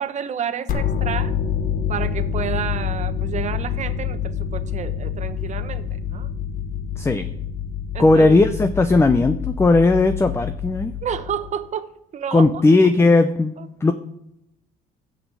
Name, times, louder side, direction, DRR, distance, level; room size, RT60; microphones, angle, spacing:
voice 1, 0.0-1.3 1.9-6.3 7.9-8.4 11.0-12.6 13.6-13.7, right 8 dB, 45° right, 11 dB, 1.0 m, -30 dB
sound 1, 0.7-11.7, left 8 dB, 55° left, 1.1 m, -27 dB
voice 2, 7.0-7.3 8.0-11.0 12.3-13.6 13.8-13.9, left 3 dB, 15° left, 9 dB, 0.7 m, -16 dB
11.5 x 6.3 x 8.3 m, 0.82 s
cardioid pair, 110°, 17 cm